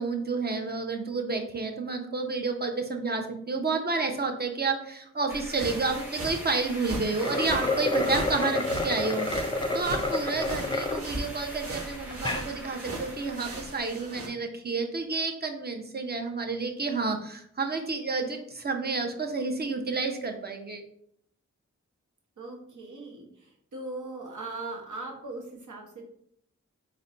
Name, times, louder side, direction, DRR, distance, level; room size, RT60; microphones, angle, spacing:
voice 1, 0.0-20.8, right 4 dB, 35° right, 4 dB, 0.7 m, -30 dB
sound 1, 5.3-13.8, equal, 5° right, 0.9 m, -43 dB
sound 2, 5.6-14.3, right 2 dB, 50° right, 1.1 m, -39 dB
sound 3, 7.1-11.0 11.5-11.6 12.1-12.5, left 2 dB, 15° left, 0.5 m, -29 dB
voice 2, 22.4-26.0, right 2 dB, 80° right, 1 dB, 0.9 m, -39 dB
4.1 x 2.2 x 3.8 m, 0.69 s
wide cardioid pair, 55°, 30 cm